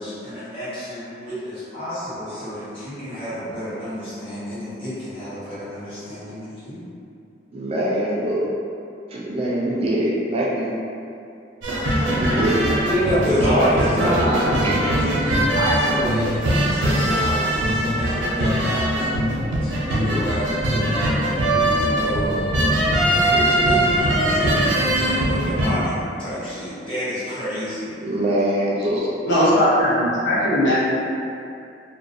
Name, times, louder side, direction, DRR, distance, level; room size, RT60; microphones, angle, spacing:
voice 1, 0.0-6.9 12.9-14.6 14.9-22.5 23.1-25.9 26.2-27.9, equal, 30° left, -12 dB, 0.9 m, -29 dB
voice 2, 7.5-8.5 9.1-10.7 12.1-12.6 13.1-14.9 28.0-29.1, right 1 dB, 35° right, -5 dB, 0.3 m, -23 dB
sound 1, 11.6-25.7, right 1 dB, 90° right, 0.5 m, -21 dB
voice 3, 29.3-30.7, equal, 75° left, -9 dB, 0.7 m, -18 dB
2.3 x 2.1 x 2.5 m, 2.5 s
head